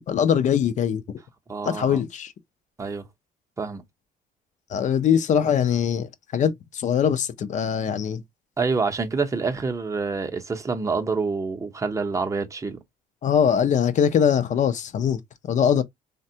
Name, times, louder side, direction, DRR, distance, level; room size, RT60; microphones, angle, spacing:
voice 1, 0.1-1.0 1.6-2.3 4.7-8.2 13.2-15.8, left 8 dB, 45° left, 0.5 m, -22 dB
voice 2, 1.5-2.0 2.8-3.0 3.6-3.8 8.6-12.8, right 4 dB, 20° right, 0.7 m, -27 dB
3.4 x 2.2 x 2.7 m
cardioid pair, 110°, 17 cm